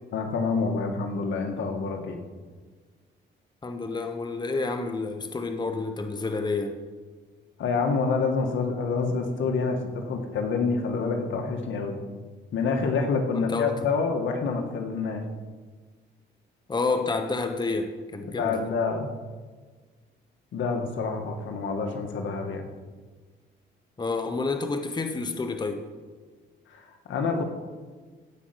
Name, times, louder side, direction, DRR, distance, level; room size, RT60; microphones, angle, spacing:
voice 1, 0.1-2.2 7.6-12.0 12.5-15.2 18.3-19.1 20.5-22.7 26.7-27.4, left 4 dB, 75° left, 3 dB, 2.1 m, -27 dB
voice 2, 3.6-6.8 13.3-13.7 16.7-18.6 24.0-25.8, left 3 dB, 20° left, 7 dB, 1.1 m, -29 dB
16.5 x 5.8 x 8.2 m, 1.4 s
cardioid pair, 90°, 20 cm